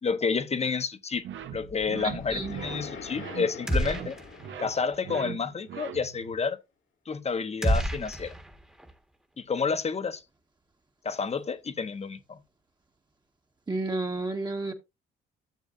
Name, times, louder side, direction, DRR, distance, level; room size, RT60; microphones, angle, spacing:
voice 1, 0.0-1.2 1.5-4.2 4.6-6.6 7.1-8.3 9.4-10.2 11.0-12.4, left 5 dB, 35° left, 1.1 m, -30 dB
sound 1, 1.2-6.4, right 9 dB, 75° right, 1.2 m, -41 dB
sound 2, 1.4-5.7, left 5 dB, 80° left, 2.2 m, -44 dB
voice 2, 2.0-2.5 13.7-14.7, right 2 dB, 20° right, 1.6 m, -31 dB
sound 3, 3.7-4.6 4.8-5.0 7.6-8.9, equal, 5° right, 1.5 m, -29 dB
13.0 x 7.0 x 2.6 m
cardioid pair, 90°, 20 cm